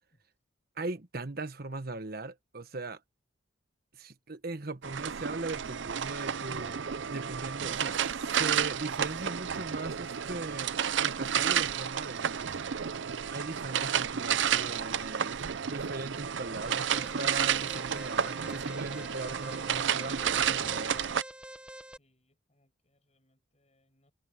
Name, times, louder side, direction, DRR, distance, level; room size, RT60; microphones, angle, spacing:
voice 1, 0.8-3.0 3.9-12.6 13.3-21.0, right 2 dB, 50° right, 1.3 m, -39 dB
sound 1, 4.8-21.2, right 8 dB, 70° right, 0.6 m, -31 dB
Alarm, 16.6-22.0, right 1 dB, 5° right, 1.2 m, -47 dB
voice 2, 22.0-24.1, left 1 dB, 35° left, 6.6 m, -72 dB
head